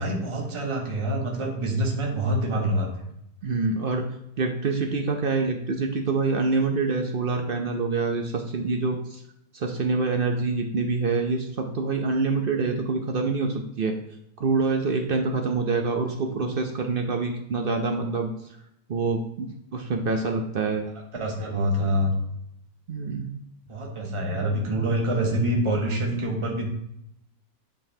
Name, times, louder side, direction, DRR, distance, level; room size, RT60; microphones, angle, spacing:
voice 1, 0.0-3.1 21.1-22.1 23.7-26.7, right 1 dB, 20° right, 0 dB, 1.1 m, -26 dB
voice 2, 3.4-4.1 4.4-9.2 9.5-14.0 14.4-18.3 18.9-20.8 22.9-23.3, right 4 dB, 65° right, 4 dB, 0.5 m, -26 dB
9.2 x 5.4 x 2.8 m, 0.78 s
omnidirectional pair, 1.7 m